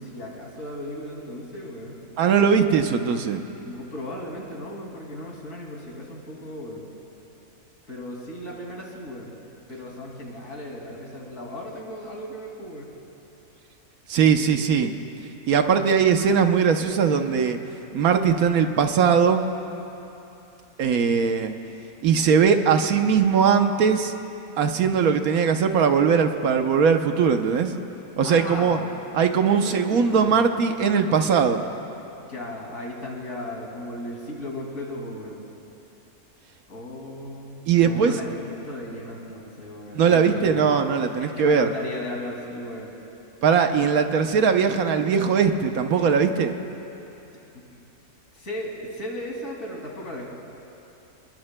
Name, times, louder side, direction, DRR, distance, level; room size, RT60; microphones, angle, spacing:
voice 1, 0.0-2.0 3.6-6.9 7.9-9.3 9.7-12.9 28.2-29.1 29.5-30.5 32.3-35.4 36.7-40.8 41.1-42.9 47.5-47.6 48.3-50.3, left 1 dB, 60° left, -2 dB, 2.9 m, -36 dB
voice 2, 2.2-3.4 14.1-14.9 15.5-17.6 17.9-19.4 20.8-21.5 22.0-24.1 24.6-27.7 28.2-28.8 29.1-31.6 37.7-38.2 39.9-41.7 43.4-46.5, right 6 dB, 75° right, 6 dB, 1.2 m, -20 dB
28.5 x 21.0 x 2.2 m, 3.0 s
omnidirectional pair, 1.6 m